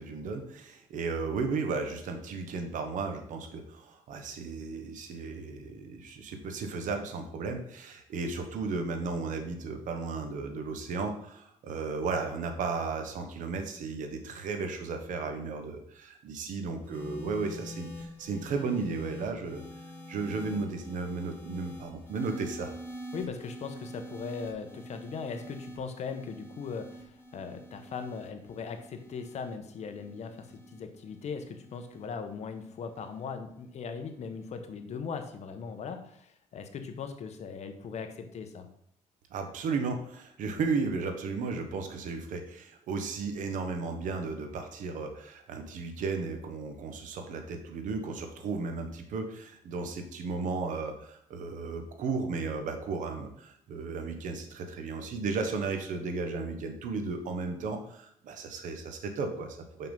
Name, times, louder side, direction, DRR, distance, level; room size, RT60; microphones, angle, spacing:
voice 1, 0.0-19.6 20.1-22.7 39.3-59.9, right 4 dB, 80° right, 6 dB, 1.2 m, -34 dB
sound 1, 16.8-33.3 34.2-34.6, equal, 15° left, 2.9 m, -46 dB
voice 2, 23.1-38.7, left 5 dB, 60° left, 7 dB, 1.1 m, -39 dB
5.9 x 5.7 x 5.4 m, 0.72 s
cardioid pair, 120°, 13 cm